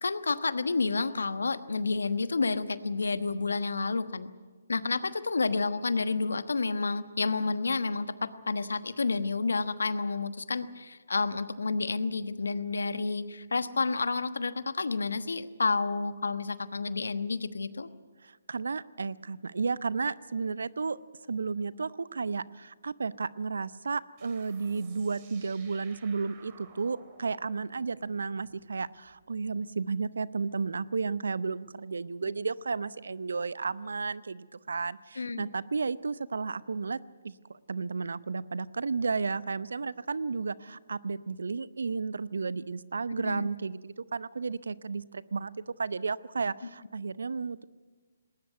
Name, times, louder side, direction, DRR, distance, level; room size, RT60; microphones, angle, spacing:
voice 1, 0.0-4.3 4.7-17.9 35.2-35.5 43.2-43.5, left 4 dB, 75° left, 13 dB, 1.2 m, -30 dB
voice 2, 18.2-21.0 21.3-37.0 37.2-37.3 37.7-45.5 45.8-47.6, right 4 dB, 70° right, 18 dB, 0.7 m, -33 dB
sound 1, 24.2-29.5, right 5 dB, 35° right, 3.9 m, -57 dB
20.0 x 19.0 x 9.3 m, 1.4 s
figure-of-eight pair, 140°, 0 cm